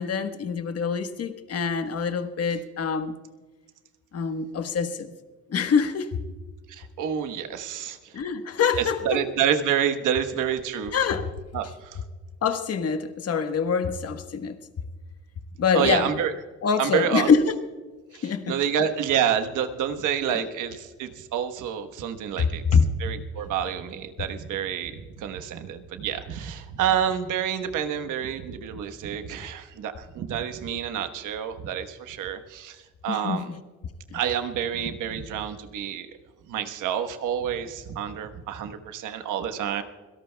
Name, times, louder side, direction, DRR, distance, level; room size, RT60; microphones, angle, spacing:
voice 1, 0.0-3.1 4.1-5.1 5.5-6.2 8.1-9.2 10.9-11.3 12.4-14.6 15.6-16.1 16.6-17.5 18.2-18.5 22.4-22.8 33.1-33.4 34.1-34.2, left 6 dB, 55° left, 1.3 m, -25 dB
voice 2, 6.7-8.2 8.8-10.9 11.5-12.0 15.7-16.3 16.8-17.3 18.1-22.6 23.0-33.5 34.1-36.1 36.5-39.8, right 9 dB, 85° right, 1.3 m, -28 dB
25.5 x 17.5 x 2.3 m
cardioid pair, 90°, 30 cm